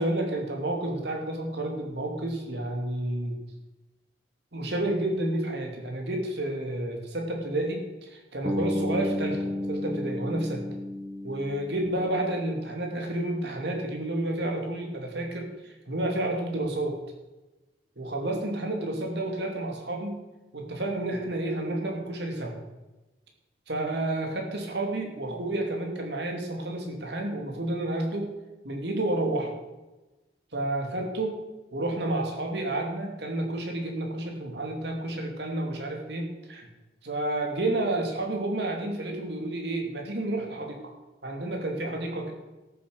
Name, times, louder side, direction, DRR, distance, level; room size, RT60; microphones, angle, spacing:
voice 1, 0.0-3.4 4.5-10.6 11.2-17.0 18.0-20.2 20.5-22.6 23.7-28.3 28.6-29.5 30.5-31.4 31.7-36.7 37.0-40.8 41.2-42.3, right 1 dB, 70° right, 2 dB, 2.8 m, -30 dB
Bass guitar, 8.4-12.5, left 1 dB, 25° right, 1.4 m, -32 dB
13.5 x 7.6 x 6.9 m, 1.1 s
head